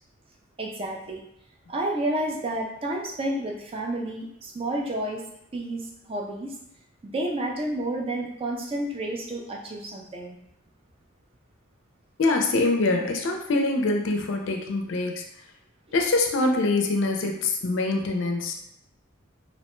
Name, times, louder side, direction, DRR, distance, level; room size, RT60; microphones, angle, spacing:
voice 1, 0.6-1.2 1.7-5.3 5.5-6.5 7.0-10.4 15.9-16.0, right 1 dB, 25° right, 0 dB, 0.3 m, -30 dB
voice 2, 12.2-15.2 15.9-18.5, left 2 dB, 60° left, 2 dB, 0.4 m, -24 dB
2.8 x 2.1 x 3.0 m, 0.76 s
head